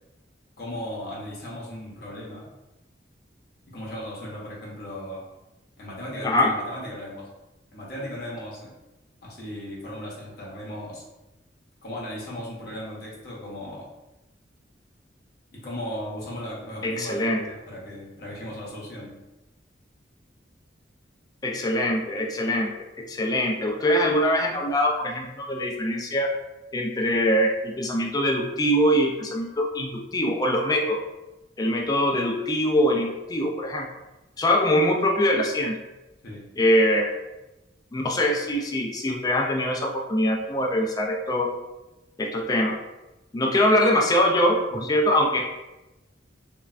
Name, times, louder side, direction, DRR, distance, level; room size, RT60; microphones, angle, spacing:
voice 1, 0.6-2.5 3.7-5.2 5.8-7.3 7.7-8.7 9.2-11.0 11.8-13.9 15.5-19.2 36.2-36.5 44.7-44.9, equal, 60° left, -5 dB, 0.8 m, -36 dB
voice 2, 16.8-17.4 21.4-22.7 23.0-26.3 26.7-31.0 31.6-33.9 34.4-35.8 36.6-37.1 37.9-41.5 42.2-42.8 43.3-45.4, equal, 20° left, 1 dB, 0.3 m, -23 dB
3.1 x 2.2 x 2.4 m, 1.0 s
head